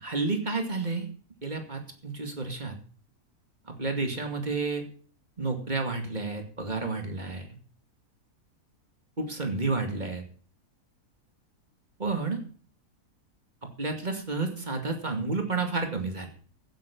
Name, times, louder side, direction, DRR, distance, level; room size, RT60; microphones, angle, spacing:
voice 1, 0.0-1.1 1.4-2.7 3.7-4.8 5.4-7.5 9.2-10.2 12.0-12.4 13.8-16.3, right 3 dB, 30° right, 4 dB, 2.5 m, -30 dB
16.0 x 9.6 x 5.4 m, 0.43 s
omnidirectional pair, 1.6 m